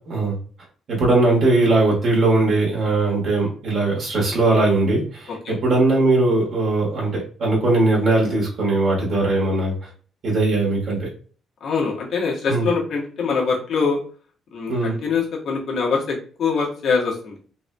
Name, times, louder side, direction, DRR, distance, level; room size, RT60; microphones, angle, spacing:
voice 1, 0.1-0.4 0.9-9.9 10.2-11.1 12.5-12.7 14.7-15.0, right 2 dB, 60° right, -5 dB, 1.6 m, -20 dB
voice 2, 11.6-14.0 14.5-17.3, left 5 dB, 65° left, -3 dB, 1.4 m, -23 dB
4.0 x 2.6 x 2.3 m, 0.42 s
cardioid pair, 90°, 0 cm